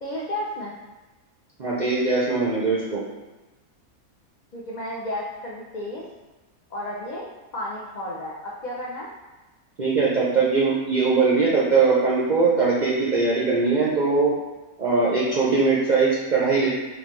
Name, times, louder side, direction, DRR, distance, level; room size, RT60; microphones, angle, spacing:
voice 1, 0.0-0.8 4.5-6.1 6.7-7.3 7.5-9.1 15.5-15.6, left 1 dB, 80° left, -5 dB, 0.4 m, -32 dB
voice 2, 1.6-3.0 9.8-14.3 14.8-16.7, right 4 dB, 55° right, -6 dB, 0.5 m, -21 dB
3.8 x 3.1 x 3.1 m, 1.1 s
omnidirectional pair, 1.5 m